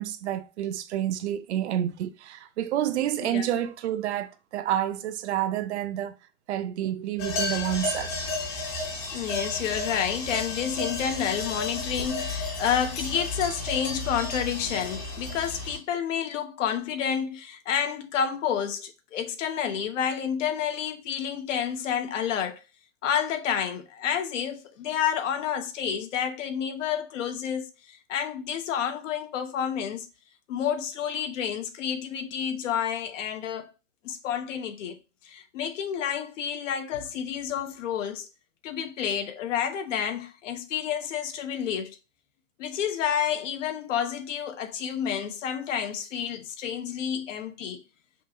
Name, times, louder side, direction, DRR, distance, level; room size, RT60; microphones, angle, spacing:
voice 1, 0.0-6.1 6.5-8.1, right 11 dB, 55° right, 0.5 m, -29 dB
sound 1, 7.2-15.8, left 3 dB, 30° left, 0.8 m, -32 dB
voice 2, 9.1-22.6 23.0-30.1 30.5-33.7 34.0-38.3 38.6-42.0 42.6-47.8, left 8 dB, 65° left, 0.9 m, -29 dB
5.5 x 2.4 x 2.7 m
supercardioid pair, 170°, 40 cm